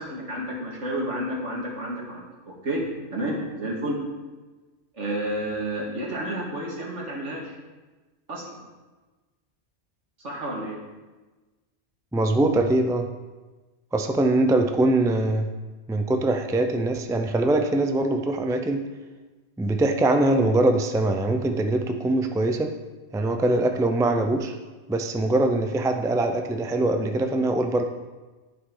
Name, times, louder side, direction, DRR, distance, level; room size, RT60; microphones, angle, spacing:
voice 1, 0.0-2.8 3.1-4.0 4.9-7.5 8.3-8.4 10.2-10.8, right 1 dB, 85° right, -3 dB, 2.3 m, -30 dB
voice 2, 12.1-13.1 13.9-15.5 15.9-18.8 19.6-22.7 23.1-24.5 24.9-27.8, right 2 dB, 5° right, 5 dB, 0.3 m, -22 dB
11.0 x 6.4 x 3.9 m, 1.2 s
omnidirectional pair, 1.2 m